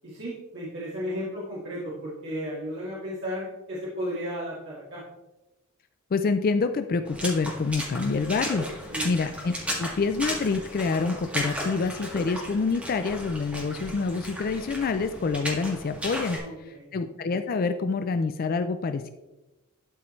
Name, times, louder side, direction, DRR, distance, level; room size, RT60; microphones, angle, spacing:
voice 1, 0.0-5.0 8.9-9.1 16.4-16.9, equal, 55° right, -8 dB, 1.8 m, -34 dB
voice 2, 6.1-16.4 16.9-19.1, left 4 dB, 40° left, 9 dB, 0.3 m, -27 dB
Water / Splash splatter, 7.0-16.4, equal, 5° right, 1.7 m, -35 dB
12.5 x 4.6 x 3.1 m, 1.0 s
head